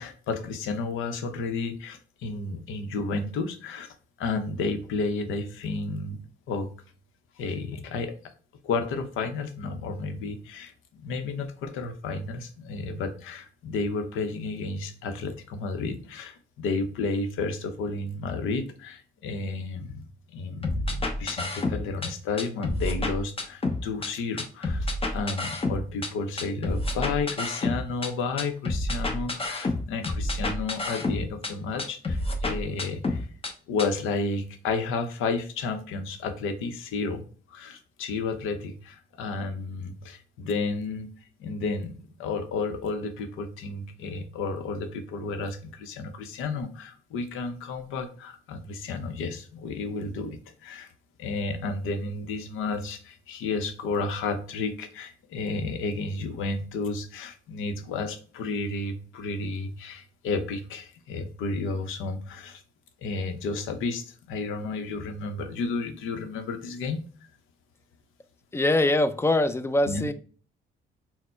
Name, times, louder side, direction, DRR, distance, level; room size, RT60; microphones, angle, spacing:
voice 1, 0.0-3.9 4.2-6.2 6.5-6.7 7.4-8.1 8.6-10.7 11.0-20.1 20.3-24.9 25.1-33.3 33.7-37.2 37.5-41.1 41.4-50.9 51.2-62.6 63.0-67.0 69.9-70.1, left 3 dB, 90° left, 7 dB, 0.7 m, -32 dB
sound 1, 20.6-22.1 22.4-24.1 24.4-26.1 26.4-28.1 28.4-31.5 31.8-33.5 33.8-33.9, left 2 dB, 30° left, 0.9 m, -29 dB
voice 2, 68.5-70.1, left 1 dB, 15° left, 11 dB, 0.4 m, -23 dB
4.3 x 2.1 x 4.3 m, 0.41 s
cardioid pair, 90°, 20 cm